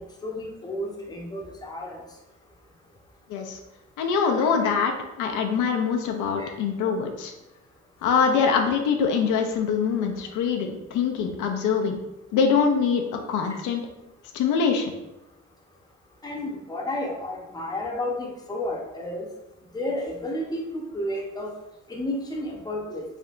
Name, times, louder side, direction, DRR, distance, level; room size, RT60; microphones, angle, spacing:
voice 1, 0.0-2.0 6.4-6.5 16.2-19.3 19.7-21.5 21.9-23.0, left 1 dB, 15° left, -1 dB, 0.7 m, -32 dB
voice 2, 4.0-4.9 5.2-7.3 8.0-12.0 12.3-13.8 14.3-14.9, left 6 dB, 85° left, 3 dB, 0.5 m, -24 dB
3.3 x 2.8 x 2.4 m, 0.93 s
cardioid pair, 90°, 30 cm